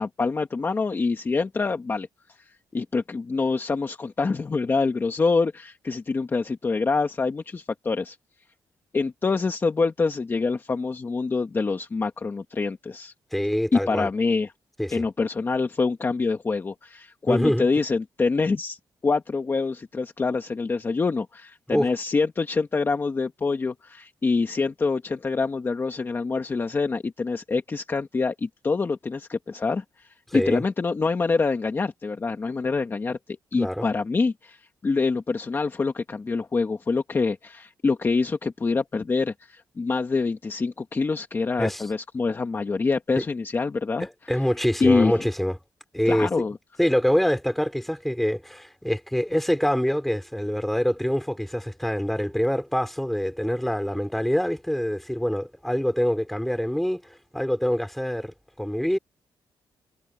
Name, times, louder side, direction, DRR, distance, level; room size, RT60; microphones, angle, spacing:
voice 1, 0.0-8.2 8.9-13.1 13.7-14.5 14.9-18.8 19.0-33.2 33.5-44.1 44.8-45.3 46.0-46.6, left 4 dB, 25° left, 1.4 m, -26 dB
voice 2, 13.3-14.1 14.8-15.0 17.3-17.7 21.7-21.9 30.3-30.6 33.6-33.9 41.6-41.9 44.0-45.6 45.9-46.3 46.8-57.0 57.3-59.0, equal, ahead, 4.5 m, -25 dB
cardioid pair, 135°, 8 cm